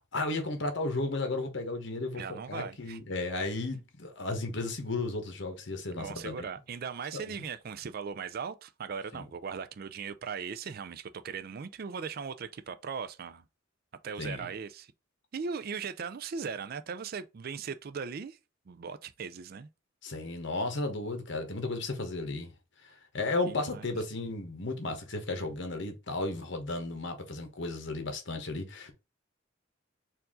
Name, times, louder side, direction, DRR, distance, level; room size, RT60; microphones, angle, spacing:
voice 1, 0.1-2.2 2.5-6.5 7.1-7.4 9.1-9.2 14.2-14.5 20.0-22.5 23.1-28.9, left 2 dB, 60° left, 1.2 m, -34 dB
voice 2, 2.1-3.0 6.0-13.4 14.0-14.9 15.3-18.4 18.7-19.7 23.5-23.9, right 6 dB, 50° right, 0.4 m, -38 dB
4.6 x 2.6 x 3.7 m
head